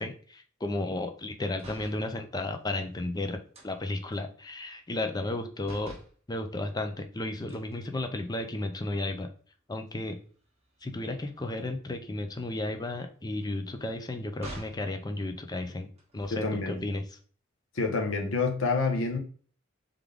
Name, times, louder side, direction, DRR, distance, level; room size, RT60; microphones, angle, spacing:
voice 1, 0.0-3.4 3.6-5.9 6.3-9.3 9.7-10.2 10.8-17.0, left 2 dB, 20° left, 0.5 m, -33 dB
sound 1, 1.5-2.1 3.5-5.4 5.6-6.2 7.5-8.5 9.0-9.2 9.5-14.9 15.9-16.7, right 1 dB, 30° right, 1.2 m, -50 dB
voice 2, 16.3-16.8 17.7-19.2, left 3 dB, 70° left, 0.9 m, -28 dB
3.7 x 3.5 x 3.4 m
head